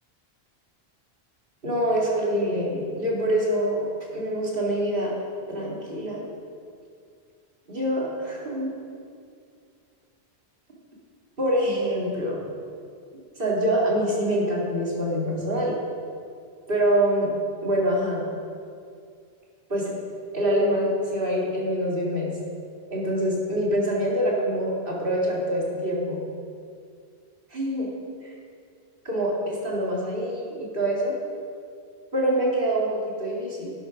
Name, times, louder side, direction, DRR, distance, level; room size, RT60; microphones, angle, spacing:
voice 1, 1.6-5.2 5.5-6.3 7.7-8.7 11.4-12.4 13.4-15.8 16.7-17.3 17.6-18.2 19.7-20.0 20.3-22.3 22.9-26.2 27.5-27.9 28.2-28.3 29.0-31.2 32.1-33.7, equal, 55° right, -4 dB, 2.7 m, -25 dB
12.0 x 9.0 x 5.9 m, 2.3 s
omnidirectional pair, 1.1 m